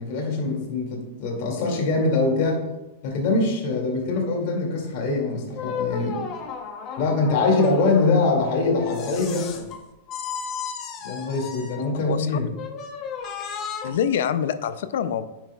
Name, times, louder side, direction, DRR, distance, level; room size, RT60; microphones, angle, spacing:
voice 1, 0.0-2.6 3.0-6.2 7.0-9.6 11.0-12.5, left 3 dB, 55° left, 0 dB, 2.3 m, -23 dB
sound 1, 5.5-8.1 8.8-9.8 10.1-11.9 12.5-13.9, left 6 dB, 35° left, 0.9 m, -34 dB
voice 2, 12.1-12.5 13.8-15.3, left 8 dB, 75° left, 13 dB, 0.4 m, -25 dB
8.5 x 6.0 x 2.3 m, 1.0 s
hypercardioid pair, 130°, 0 cm